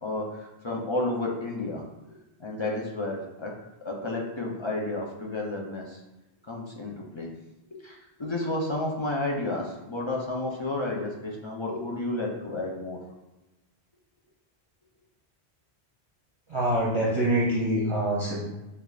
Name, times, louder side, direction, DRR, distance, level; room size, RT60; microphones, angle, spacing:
voice 1, 0.0-3.5 3.8-6.0 6.5-7.3 7.8-13.0, left 2 dB, 40° left, -2 dB, 0.4 m, -31 dB
voice 2, 16.5-18.4, right 1 dB, 35° right, -6 dB, 0.6 m, -25 dB
6.5 x 2.3 x 2.4 m, 0.98 s
omnidirectional pair, 1.1 m